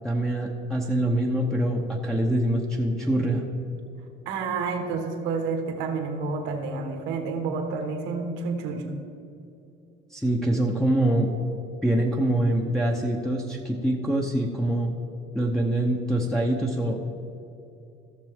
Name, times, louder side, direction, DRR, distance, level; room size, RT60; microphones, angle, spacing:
voice 1, 0.0-3.4 10.1-11.3 11.8-14.9 15.3-17.0, right 1 dB, 5° left, -3 dB, 0.8 m, -24 dB
voice 2, 4.2-8.8, right 4 dB, 80° right, 3 dB, 1.5 m, -29 dB
15.0 x 6.7 x 3.6 m, 2.8 s
cardioid pair, 125°, 19 cm